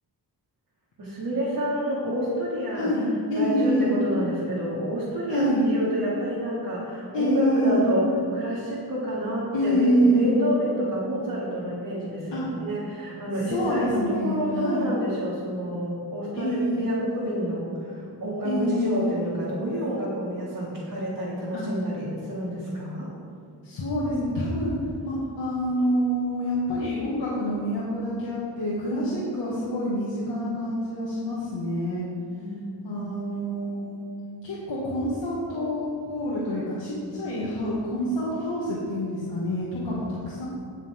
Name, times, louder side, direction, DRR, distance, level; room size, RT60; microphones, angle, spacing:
voice 1, 1.0-2.9 3.3-23.1 32.3-33.1, right 1 dB, 55° right, -10 dB, 3.2 m, -29 dB
voice 2, 2.7-4.0 5.3-5.7 7.1-7.9 9.5-10.3 12.3-12.4 13.5-15.0 16.3-16.9 18.4-19.1 21.5-21.6 23.6-24.7 25.0-32.0 32.8-34.0 34.4-40.5, equal, 80° left, -8 dB, 2.3 m, -26 dB
18.0 x 7.0 x 3.9 m, 2.2 s
wide cardioid pair, 115°, 42 cm